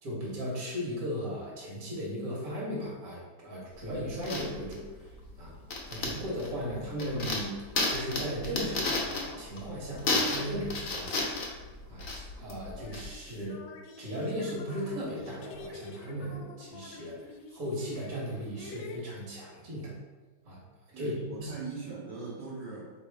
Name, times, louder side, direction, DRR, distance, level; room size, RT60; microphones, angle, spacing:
voice 1, 0.0-5.0 5.4-5.5 5.9-7.5 7.9-11.3 11.9-13.6 14.0-19.9 20.4-20.6 21.0-21.5, equal, 50° right, -4 dB, 1.5 m, -36 dB
sound 1, 3.7-13.1, left 3 dB, 55° left, 1.0 m, -33 dB
sound 2, 11.8-11.9 12.6-19.0, left 4 dB, 80° left, 1.3 m, -48 dB
voice 2, 20.9-22.9, right 4 dB, 65° right, -5 dB, 1.1 m, -40 dB
4.4 x 3.4 x 3.3 m, 1.3 s
omnidirectional pair, 2.2 m